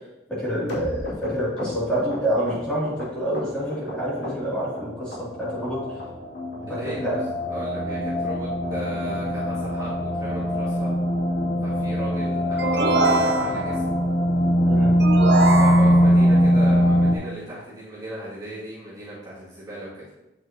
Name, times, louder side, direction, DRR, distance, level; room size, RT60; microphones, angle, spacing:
voice 1, 0.3-6.0 6.7-7.2 14.6-15.0, equal, 5° left, -10 dB, 2.9 m, -27 dB
sound 1, 0.7-3.9 4.2-4.8 5.1-5.7 6.0-6.1 6.3-6.6 6.9-7.0 7.2-7.4 7.8-7.9 8.1-8.3 8.6-8.7 9.0-9.2 9.5-9.6 9.9-10.1 10.4-10.5, left 1 dB, 70° left, 2.1 m, -37 dB
sound 2, 4.8-17.2, equal, 40° left, 1.1 m, -22 dB
voice 2, 6.7-7.2 7.5-10.9 11.6-13.8 15.6-20.0, right 1 dB, 20° right, -11 dB, 2.6 m, -36 dB
sound 3, 12.6-13.9 15.0-16.3, right 2 dB, 65° right, 0.7 m, -23 dB
8.8 x 6.0 x 3.0 m, 0.95 s
head